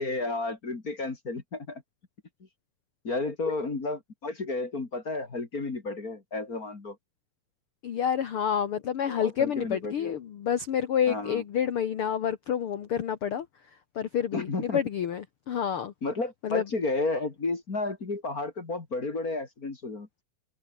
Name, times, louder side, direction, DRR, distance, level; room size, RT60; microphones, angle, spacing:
voice 1, 0.0-1.8 3.0-7.0 9.1-10.1 11.1-11.4 14.3-14.8 16.0-20.2, left 3 dB, 30° left, 2.4 m, -32 dB
voice 2, 7.8-13.4 13.9-15.9 16.4-16.6, left 8 dB, 55° left, 1.6 m, -28 dB
omnidirectional pair, 4.1 m